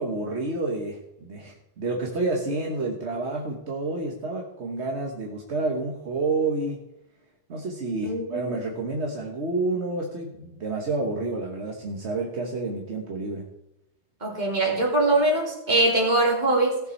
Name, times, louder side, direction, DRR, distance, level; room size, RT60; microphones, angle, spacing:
voice 1, 0.0-6.8 7.5-13.5, right 3 dB, 70° right, 1 dB, 1.6 m, -29 dB
voice 2, 8.0-8.5 14.2-16.8, right 2 dB, 40° right, -3 dB, 3.5 m, -22 dB
17.0 x 6.9 x 4.5 m, 0.88 s
omnidirectional pair, 1.2 m